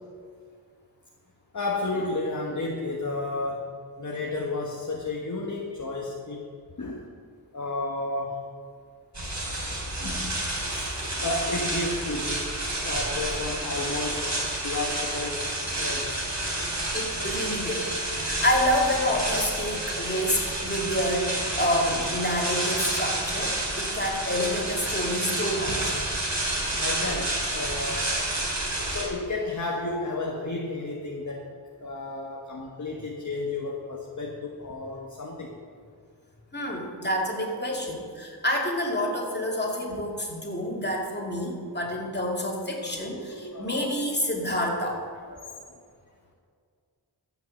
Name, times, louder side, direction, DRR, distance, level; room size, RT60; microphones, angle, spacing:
voice 1, 1.5-6.5 6.8-7.1 7.5-8.5 10.0-12.5 12.8-14.3 14.6-15.4 15.8-16.3 26.7-28.1 28.9-31.5 31.8-35.5 39.9-40.0 42.8-43.9 44.4-44.5 45.3-45.8, left 2 dB, 40° left, -1 dB, 1.3 m, -32 dB
sound 1, 9.1-29.0, right 1 dB, 40° right, 3.7 m, -30 dB
voice 2, 16.9-26.0 36.5-45.0, equal, 25° left, -1 dB, 2.6 m, -28 dB
15.0 x 5.8 x 7.6 m, 2.1 s
wide cardioid pair, 75°, 43 cm